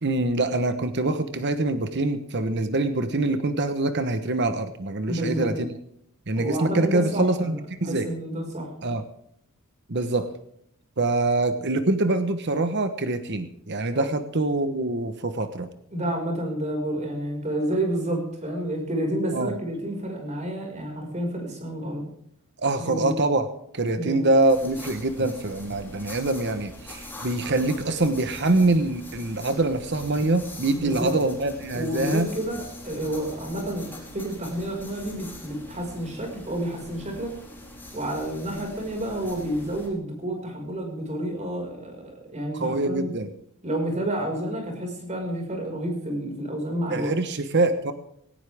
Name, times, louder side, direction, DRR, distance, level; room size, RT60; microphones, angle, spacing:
voice 1, 0.0-5.7 6.3-8.1 8.8-9.0 9.9-10.3 11.0-15.7 19.3-19.6 22.6-23.5 23.7-32.3 42.5-43.3 46.9-47.9, right 2 dB, 50° right, 10 dB, 1.1 m, -24 dB
voice 2, 5.0-5.5 6.4-8.7 13.9-14.1 15.9-22.1 22.8-23.1 24.0-24.2 30.8-31.2 31.7-37.3 37.9-43.1 43.6-47.1, right 1 dB, 30° right, 2 dB, 5.5 m, -30 dB
sound 1, 24.5-39.9, left 1 dB, 10° left, 4.4 m, -42 dB
18.0 x 17.5 x 3.6 m, 0.69 s
head